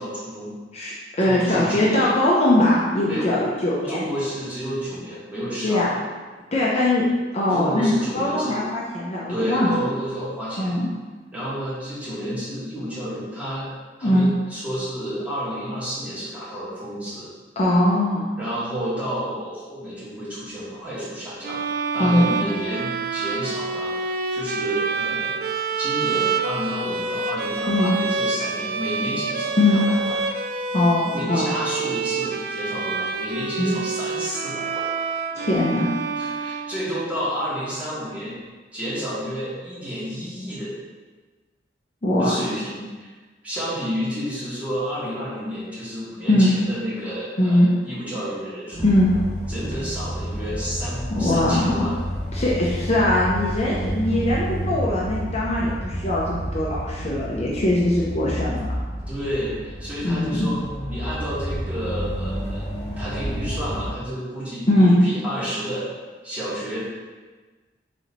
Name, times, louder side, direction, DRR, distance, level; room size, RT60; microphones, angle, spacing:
voice 1, 0.0-0.6 1.2-2.2 3.0-3.3 3.9-6.0 7.5-8.6 9.3-10.7 11.3-13.7 14.0-17.3 18.4-21.6 21.9-23.9 24.3-25.3 25.8-30.2 31.1-34.9 36.2-38.4 38.7-40.7 42.2-43.1 43.4-48.9 49.5-52.0 59.1-60.6 60.9-62.7 63.0-65.9 66.2-66.8, equal, 10° right, -10 dB, 1.5 m, -30 dB
voice 2, 0.7-4.0 5.6-5.9 6.5-7.0 7.3-9.9 10.6-10.9 14.0-14.3 17.6-18.3 22.0-22.4 27.7-27.9 29.6-29.8 30.7-31.5 33.6-33.8 35.4-35.9 42.0-42.3 46.3-46.5 47.4-47.7 48.8-49.1 51.1-51.9 52.3-58.7 60.0-60.5 64.7-65.0, left 1 dB, 35° left, -5 dB, 0.6 m, -21 dB
sound 1, 21.4-37.1, right 4 dB, 55° right, 0.3 m, -27 dB
sound 2, 48.7-63.9, equal, 15° left, 1.4 m, -30 dB
3.9 x 3.2 x 4.1 m, 1.3 s
head